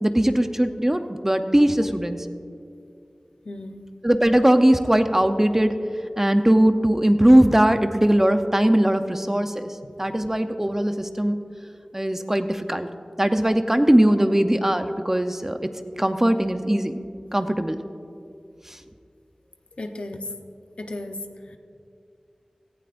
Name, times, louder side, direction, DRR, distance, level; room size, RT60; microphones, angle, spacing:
voice 1, 0.0-2.2 4.0-5.7 6.2-9.7 10.0-11.4 11.9-12.9 13.2-15.7 16.0-17.0 17.3-17.8, right 1 dB, 20° right, 8 dB, 0.7 m, -20 dB
voice 2, 3.5-3.9 9.8-9.9 19.8-20.3 20.8-21.2, left 2 dB, 70° left, 5 dB, 0.9 m, -34 dB
17.5 x 15.0 x 2.6 m, 2.4 s
wide cardioid pair, 55°, 2 cm